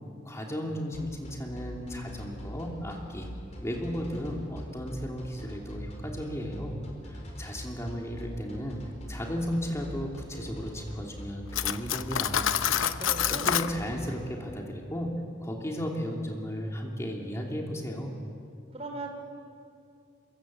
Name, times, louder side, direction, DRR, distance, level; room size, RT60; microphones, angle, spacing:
voice 1, 0.2-3.3 3.6-6.8 7.0-8.8 9.1-12.5 13.2-15.1 15.4-18.1, equal, 15° left, 0 dB, 2.8 m, -35 dB
sound 1, 0.9-14.1, equal, 35° left, 4.8 m, -42 dB
Cutlery silverware, 11.5-13.7, left 9 dB, 90° left, 0.8 m, -27 dB
voice 2, 12.7-13.5 18.7-19.1, right 2 dB, 35° right, 2 dB, 4.3 m, -38 dB
26.5 x 23.5 x 7.8 m, 2.3 s
head